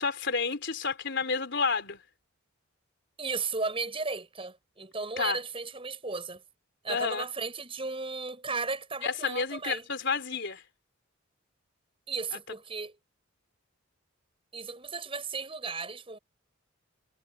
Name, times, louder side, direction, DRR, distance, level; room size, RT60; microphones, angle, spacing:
voice 1, 0.0-2.0 5.2-5.4 6.9-7.3 9.0-10.6 12.3-12.6, left 5 dB, 60° left, 4.0 m, -30 dB
voice 2, 3.2-6.4 6.8-9.8 12.1-13.0 14.5-16.2, right 4 dB, 25° right, 7.7 m, -35 dB
head